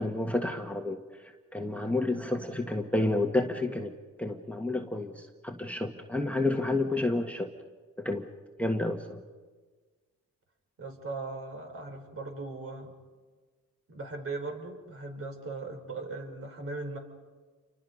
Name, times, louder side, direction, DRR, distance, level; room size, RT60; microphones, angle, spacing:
voice 1, 0.0-3.9 4.2-7.5 8.0-8.3 8.6-9.2, left 2 dB, 5° left, 4 dB, 1.5 m, -30 dB
voice 2, 10.8-12.9 13.9-17.0, right 3 dB, 45° right, 4 dB, 4.8 m, -38 dB
29.0 x 24.5 x 5.4 m, 1.4 s
cardioid pair, 90°, 30 cm